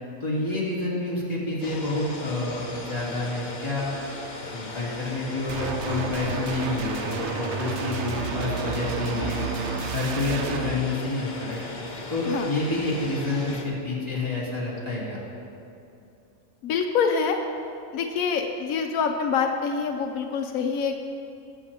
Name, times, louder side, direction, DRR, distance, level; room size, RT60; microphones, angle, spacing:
voice 1, 0.2-3.9 4.5-9.4 9.9-11.6 12.1-15.2, left 2 dB, 20° left, -8 dB, 2.8 m, -28 dB
sound 1, 1.6-13.6, left 2 dB, 40° left, 1.0 m, -38 dB
sound 2, 5.5-10.7, right 5 dB, 65° right, 0.9 m, -31 dB
voice 2, 16.6-17.4 17.9-21.0, left 6 dB, 85° left, 4 dB, 1.1 m, -25 dB
19.5 x 7.5 x 2.9 m, 2.6 s
omnidirectional pair, 1.4 m